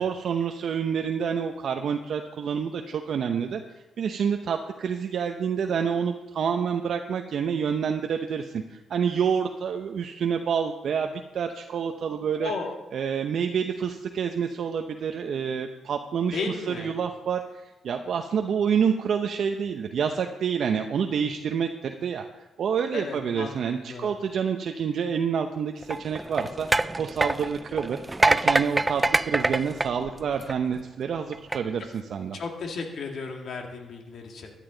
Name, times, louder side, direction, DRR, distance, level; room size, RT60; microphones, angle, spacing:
voice 1, 0.0-3.6 4.0-12.5 12.9-16.4 16.7-22.3 22.6-26.7 27.0-32.4, right 7 dB, 65° right, 5 dB, 0.7 m, -28 dB
voice 2, 12.4-12.8 16.3-17.0 22.9-24.1 32.3-34.5, left 4 dB, 65° left, 2 dB, 2.2 m, -34 dB
sound 1, 25.8-30.8 31.3-31.6, right 2 dB, 20° right, 0.3 m, -25 dB
14.0 x 10.0 x 3.9 m, 1.0 s
cardioid pair, 75°, 0 cm